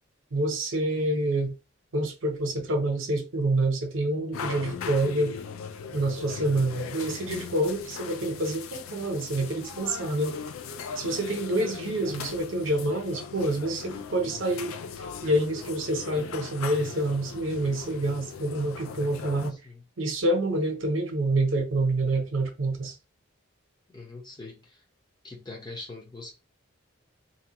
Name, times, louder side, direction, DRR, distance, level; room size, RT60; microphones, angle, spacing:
voice 1, 0.3-1.5 1.9-5.4 5.9-10.4 11.0-14.8 15.2-19.6 20.0-22.9, right 1 dB, 65° right, 0.8 m, -27 dB
sound 1, 4.3-19.5, left 6 dB, 85° left, 0.3 m, -39 dB
voice 2, 19.3-19.8 23.9-24.8 25.2-26.3, left 3 dB, 20° left, 0.8 m, -43 dB
2.8 x 2.3 x 2.8 m
head